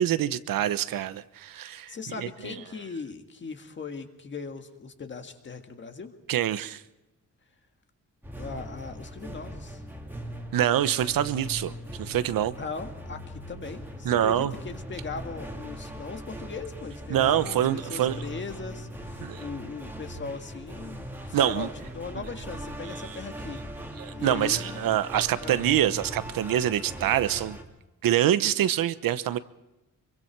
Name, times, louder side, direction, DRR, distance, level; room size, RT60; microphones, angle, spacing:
voice 1, 0.0-2.5 6.3-6.8 10.5-12.5 14.0-14.5 17.1-18.2 19.2-19.4 21.3-21.7 24.0-27.6 28.0-29.4, right 11 dB, 85° right, 13 dB, 1.0 m, -25 dB
voice 2, 1.6-6.1 8.4-9.8 12.6-23.6 24.1-25.0 25.4-25.7, left 4 dB, 35° left, 6 dB, 1.8 m, -39 dB
sound 1, 8.2-27.6, equal, 5° right, 2.4 m, -40 dB
25.0 x 23.5 x 4.7 m, 1.0 s
wide cardioid pair, 170°, 33 cm